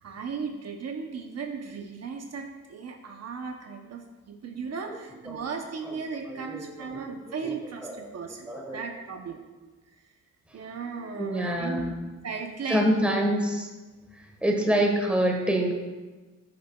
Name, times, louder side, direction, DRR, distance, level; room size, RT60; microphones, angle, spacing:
voice 1, 0.0-9.5 10.5-12.0 12.2-13.0 14.5-14.9, right 5 dB, 60° right, 3 dB, 0.8 m, -36 dB
voice 2, 6.3-7.2 7.4-7.5 7.8-8.0 8.5-8.8 11.2-11.9 12.7-13.7 14.1-15.7, equal, 5° right, 0 dB, 1.4 m, -26 dB
12.5 x 6.6 x 2.3 m, 1.2 s
cardioid pair, 100°, 30 cm